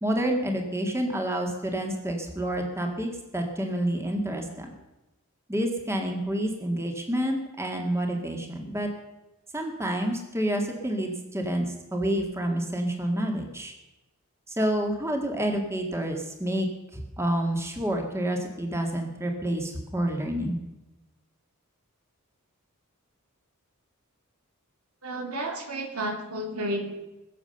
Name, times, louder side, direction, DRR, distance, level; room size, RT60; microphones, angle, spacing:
voice 1, 0.0-4.7 5.5-8.9 9.5-13.7 14.5-16.7 16.9-20.6, right 1 dB, 10° right, 3 dB, 1.8 m, -28 dB
voice 2, 25.0-26.9, right 1 dB, 80° right, 3 dB, 2.7 m, -31 dB
22.0 x 7.3 x 6.8 m, 1.0 s
head